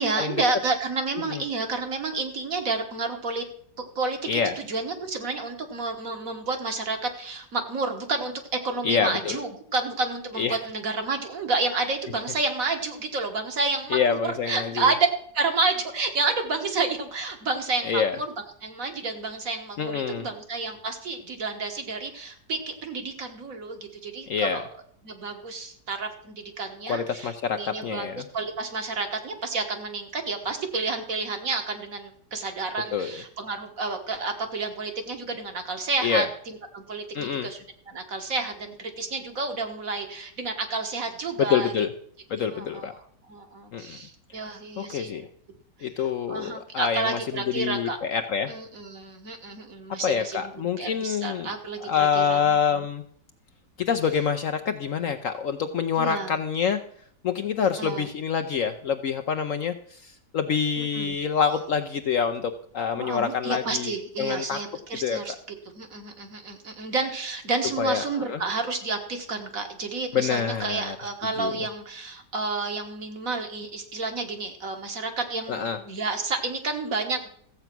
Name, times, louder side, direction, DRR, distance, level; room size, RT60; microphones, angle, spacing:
voice 1, 0.0-3.5 3.8-15.1 15.3-18.3 18.6-24.6 25.0-41.7 42.4-45.3 45.8-46.0 46.3-48.0 48.5-50.5 50.8-52.9 56.0-56.3 57.8-58.1 60.8-61.2 63.0-65.3 65.7-77.3, right 3 dB, 55° right, 5 dB, 1.8 m, -30 dB
voice 2, 8.8-9.4 10.4-10.6 13.9-14.9 17.8-18.2 19.8-20.3 24.3-24.6 26.9-28.2 32.9-33.2 36.0-36.3 37.1-37.5 41.5-41.9 42.3-42.9 43.7-44.0 44.8-45.3 45.8-48.5 50.0-51.5 51.8-53.0 53.8-56.8 57.2-64.6 65.0-65.2 67.8-68.4 70.1-71.0 71.4-71.5 75.5-75.8, left 7 dB, 60° left, 7 dB, 0.9 m, -26 dB
14.0 x 8.1 x 6.0 m, 0.63 s
omnidirectional pair, 1.8 m